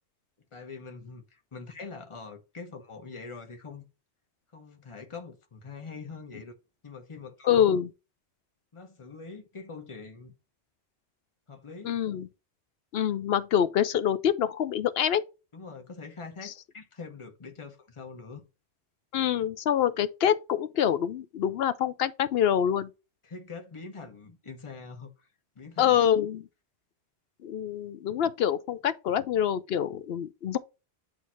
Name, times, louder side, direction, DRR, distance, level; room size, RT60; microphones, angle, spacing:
voice 1, 0.5-3.8 4.5-6.5 6.8-7.7 8.7-10.3 11.5-11.9 15.5-18.4 23.2-25.3 25.5-26.0, left 4 dB, 30° left, 1.0 m, -44 dB
voice 2, 7.5-7.9 11.8-12.3 12.9-15.2 16.4-16.5 19.1-22.9 25.8-26.5 27.4-30.6, left 9 dB, 70° left, 0.8 m, -26 dB
8.4 x 2.8 x 4.4 m
omnidirectional pair, 1.1 m